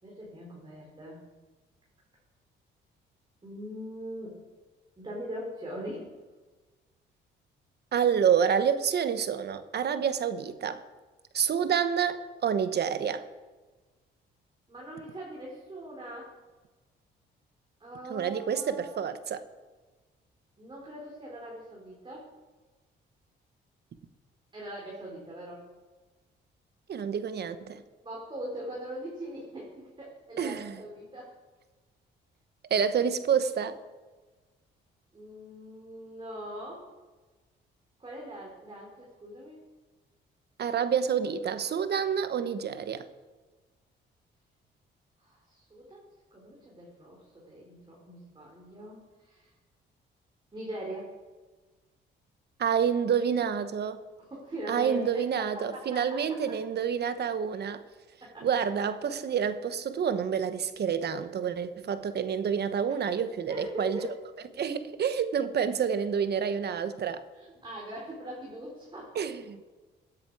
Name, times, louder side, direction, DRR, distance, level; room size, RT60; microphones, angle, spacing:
voice 1, 0.0-1.2 3.4-4.5 5.0-6.1 14.7-16.3 17.8-19.0 20.6-22.3 24.5-25.7 28.0-31.4 35.1-36.8 38.0-39.6 45.2-49.5 50.5-51.2 54.2-56.2 58.2-58.6 62.9-63.2 63.5-64.1 67.3-69.2, right 1 dB, 25° right, -4 dB, 4.1 m, -41 dB
voice 2, 7.9-10.8 11.3-13.2 18.1-19.4 26.9-27.8 30.4-30.7 32.7-33.8 40.6-43.1 52.6-54.0 54.7-57.8 58.4-64.0 64.6-67.2 69.1-69.6, right 7 dB, 55° right, 12 dB, 1.1 m, -28 dB
16.0 x 10.5 x 4.8 m, 1.3 s
cardioid pair, 90°, 20 cm